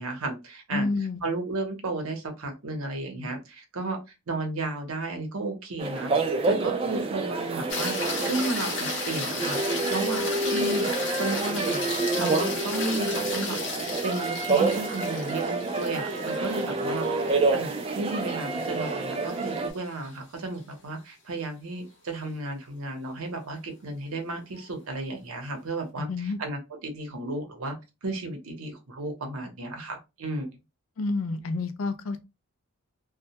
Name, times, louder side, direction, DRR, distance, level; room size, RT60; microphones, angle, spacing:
voice 1, 0.0-0.9 1.2-4.0 4.3-9.6 9.9-11.8 12.2-13.6 14.0-27.8 28.0-30.5, right 2 dB, 80° right, 0.7 m, -33 dB
voice 2, 0.7-1.2 26.0-26.4 31.0-32.2, left 3 dB, 70° left, 0.4 m, -29 dB
sound 1, 5.8-19.7, right 3 dB, 25° right, 0.3 m, -28 dB
sound 2, 7.7-20.1 24.6-24.7, left 4 dB, 55° left, 0.8 m, -35 dB
2.2 x 2.1 x 2.8 m
head